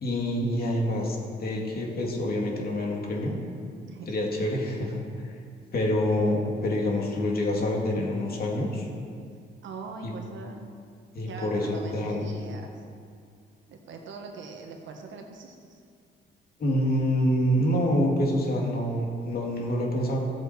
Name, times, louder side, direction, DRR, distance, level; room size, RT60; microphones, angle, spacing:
voice 1, 0.0-3.4 4.1-5.0 5.7-8.9 10.0-10.1 11.1-12.3 16.6-20.2, left 1 dB, 50° left, -1 dB, 2.5 m, -26 dB
voice 2, 9.6-10.7 11.2-12.7 13.7-15.8, right 4 dB, 70° right, 3 dB, 1.6 m, -41 dB
15.5 x 7.7 x 4.5 m, 2.2 s
cardioid pair, 90°, 20 cm